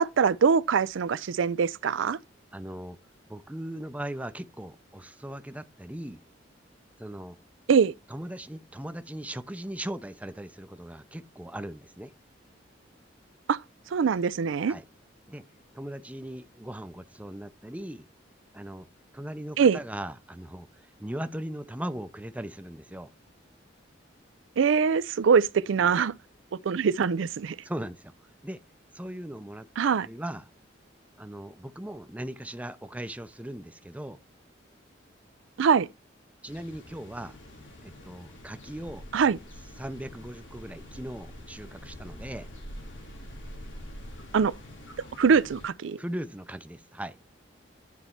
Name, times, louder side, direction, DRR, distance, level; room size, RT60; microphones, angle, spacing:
voice 1, 0.0-2.2 7.7-7.9 13.5-13.6 13.9-14.7 19.6-19.8 24.6-26.1 26.6-27.6 29.8-30.1 35.6-35.9 39.1-39.4 44.3-44.5 45.2-46.0, right 6 dB, 90° right, 0.4 m, -23 dB
voice 2, 2.5-3.0 3.3-6.2 7.0-7.4 8.1-12.1 14.6-14.8 15.3-15.4 15.7-18.1 18.5-18.9 19.1-23.1 27.6-28.1 28.4-28.6 28.9-29.7 30.0-30.5 31.2-34.2 36.4-37.4 37.8-39.0 39.8-42.5 46.0-47.2, right 1 dB, 5° right, 0.5 m, -38 dB
sound 1, 36.5-45.7, equal, 90° left, 3.6 m, -45 dB
9.9 x 4.1 x 4.4 m
head